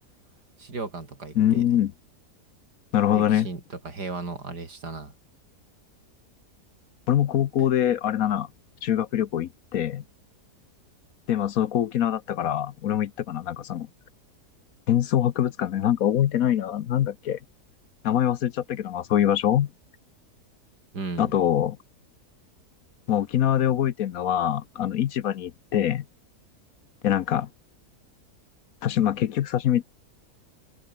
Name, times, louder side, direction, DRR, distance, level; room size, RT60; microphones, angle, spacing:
voice 1, 0.6-1.6 3.1-5.1 20.9-21.3, right 3 dB, 80° right, 4.6 m, -35 dB
voice 2, 1.3-1.9 2.9-3.5 7.1-8.5 8.8-10.0 11.3-13.9 14.9-17.4 18.0-19.7 21.2-21.8 23.1-26.0 27.0-27.5 28.8-29.8, left 11 dB, 65° left, 1.1 m, -24 dB
omnidirectional pair, 1.7 m